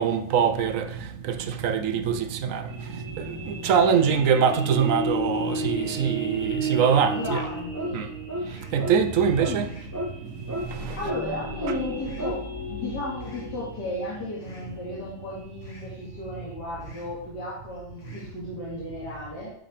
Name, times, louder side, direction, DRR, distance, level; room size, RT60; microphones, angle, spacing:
voice 1, 0.0-2.7 3.2-7.5 7.9-8.1 8.7-9.7 10.7-11.0, right 7 dB, 65° right, 0.9 m, -23 dB
sound 1, 2.7-16.8, equal, 50° right, 2.4 m, -35 dB
voice 2, 7.2-8.0 9.4-9.6 11.0-12.4 12.7-19.5, left 1 dB, 85° left, 2.8 m, -34 dB
sound 2, 7.2-7.7 8.4-8.8 9.6-10.0 10.8-11.2 12.0-12.4 13.2-13.6 14.4-14.8 15.6-16.0 16.8-17.2 18.0-18.4, equal, 65° left, 2.5 m, -46 dB
sound 3, 7.2-7.5 7.7-7.9 8.3-8.5 8.8-9.0 9.4-9.5 9.9-10.1 10.5-10.7 11.1-11.2 11.6-11.8 12.2-12.4, equal, 10° right, 1.2 m, -31 dB
12.0 x 5.0 x 3.5 m
omnidirectional pair, 1.8 m